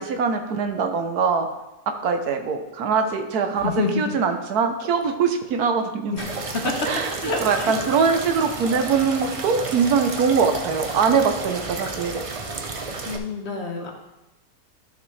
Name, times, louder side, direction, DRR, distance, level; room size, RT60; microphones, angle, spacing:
voice 1, 0.0-1.5 1.9-6.1 6.8-12.2, right 5 dB, 80° right, 6 dB, 1.4 m, -22 dB
voice 2, 3.6-4.2 6.1-6.9 7.2-7.8 13.0-13.9, left 3 dB, 50° left, 2 dB, 1.3 m, -27 dB
sound 1, 6.2-13.2, right 3 dB, 60° right, 0.3 m, -32 dB
12.0 x 6.4 x 3.3 m, 0.98 s
omnidirectional pair, 1.6 m